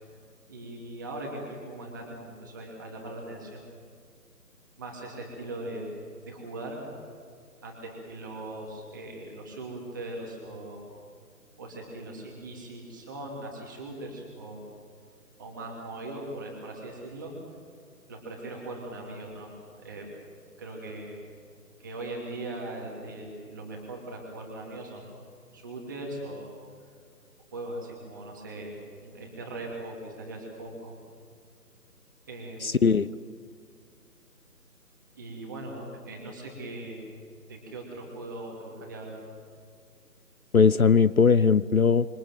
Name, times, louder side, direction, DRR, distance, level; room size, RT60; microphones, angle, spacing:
voice 1, 0.5-3.7 4.8-5.9 6.2-6.8 7.6-10.8 11.6-14.6 15.4-17.3 18.1-20.2 20.6-21.2 21.8-25.1 25.5-26.5 27.5-28.7 29.0-30.9 32.3-32.8 35.1-37.0 37.5-39.2, right 2 dB, 10° right, -1 dB, 2.7 m, -40 dB
voice 2, 32.6-33.1 40.5-42.1, left 5 dB, 60° left, 16 dB, 0.8 m, -19 dB
27.0 x 24.5 x 7.6 m, 2.1 s
figure-of-eight pair, 175°, 49 cm